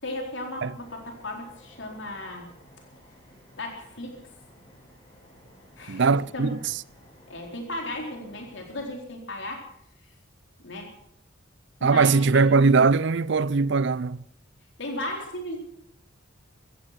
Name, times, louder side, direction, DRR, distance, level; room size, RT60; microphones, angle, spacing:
voice 1, 0.0-2.5 3.6-4.2 5.8-6.0 6.3-6.6 7.3-9.6 10.6-10.9 11.8-12.5 14.8-15.6, left 1 dB, 60° left, 4.1 m, -35 dB
sound 1, 0.7-8.9, equal, 20° left, 7.9 m, -54 dB
voice 2, 5.9-6.6 11.8-14.2, right 4 dB, 60° right, 0.5 m, -20 dB
16.0 x 15.0 x 5.9 m
head